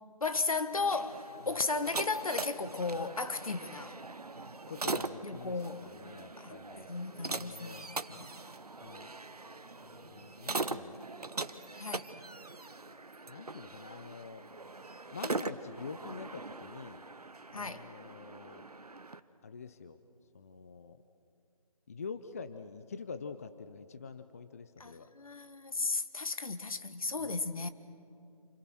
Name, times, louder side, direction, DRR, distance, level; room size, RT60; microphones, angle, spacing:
voice 1, 0.2-4.0 5.2-5.9 6.4-6.5 6.9-8.2 11.8-12.1 17.5-17.9 24.8-27.7, left 3 dB, 65° left, 1.7 m, -35 dB
sound 1, 0.7-19.2, right 3 dB, 85° right, 1.2 m, -41 dB
voice 2, 4.7-5.5 5.8-6.9 7.3-8.3 8.8-9.1 9.9-11.0 13.3-14.4 15.1-17.0 17.5-18.6 19.4-20.0 20.3-21.0 21.9-25.1 27.2-27.4, left 5 dB, 25° left, 0.6 m, -46 dB
29.0 x 27.5 x 6.3 m
figure-of-eight pair, 160°, 19 cm